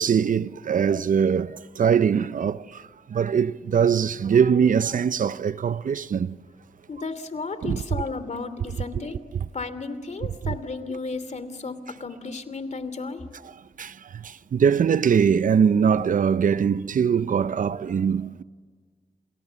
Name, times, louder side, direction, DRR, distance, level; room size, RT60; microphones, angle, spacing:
voice 1, 0.0-2.8 3.1-6.4 7.6-7.8 13.8-18.4, right 7 dB, 65° right, 0.7 m, -22 dB
voice 2, 6.9-9.2 9.5-13.2, left 4 dB, 50° left, 2.9 m, -33 dB
29.5 x 28.0 x 7.0 m
cardioid pair, 50°, 15 cm